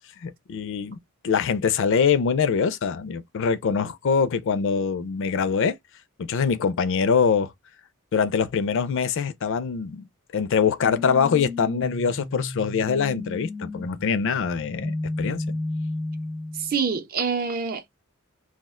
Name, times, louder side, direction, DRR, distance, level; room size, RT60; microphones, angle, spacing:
voice 1, 0.2-1.0 1.2-5.7 6.2-7.5 8.1-10.1 10.3-15.6, left 6 dB, 60° left, 0.4 m, -24 dB
sound 1, 10.8-16.8, left 2 dB, 5° left, 0.4 m, -33 dB
voice 2, 16.6-18.0, right 5 dB, 45° right, 0.6 m, -26 dB
2.4 x 2.1 x 3.5 m
head